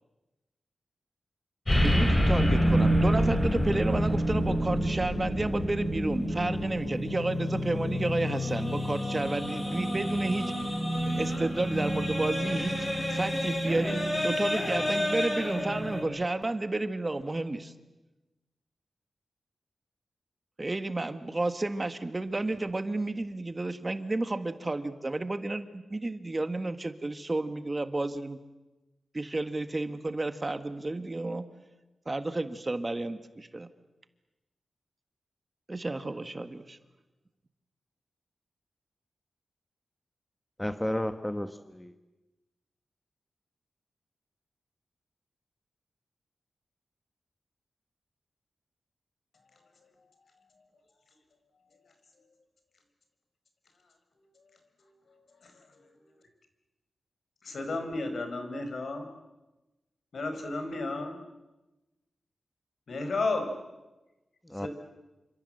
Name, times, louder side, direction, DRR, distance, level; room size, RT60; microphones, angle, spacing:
sound 1, 1.7-16.0, equal, 25° left, 7.5 m, -28 dB
voice 1, 1.8-10.7 11.1-17.7 20.6-28.4 29.1-31.4 32.0-33.7 35.7-36.8, right 2 dB, 25° right, 10 dB, 1.6 m, -31 dB
voice 2, 40.6-41.9 64.4-64.7, left 1 dB, 10° left, 9 dB, 1.1 m, -32 dB
voice 3, 57.4-59.1 60.1-61.2 62.9-63.5 64.6-64.7, left 3 dB, 65° left, 6 dB, 5.2 m, -32 dB
28.0 x 26.5 x 7.9 m, 1.1 s
wide cardioid pair, 100°, 0 cm